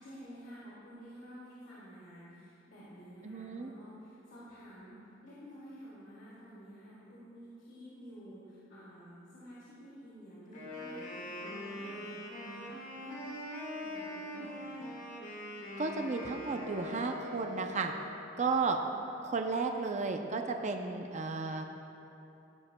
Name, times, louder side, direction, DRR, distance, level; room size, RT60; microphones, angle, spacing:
voice 1, 0.0-14.9, equal, 90° left, -10 dB, 2.2 m, -51 dB
voice 2, 3.2-3.7 15.8-17.9 18.4-18.8 19.2-21.7, right 4 dB, 40° right, 4 dB, 0.5 m, -33 dB
Wind instrument woodwind instrument, 10.5-18.2, left 1 dB, 40° left, 1.6 m, -43 dB
15.5 x 10.0 x 2.2 m, 2.9 s
head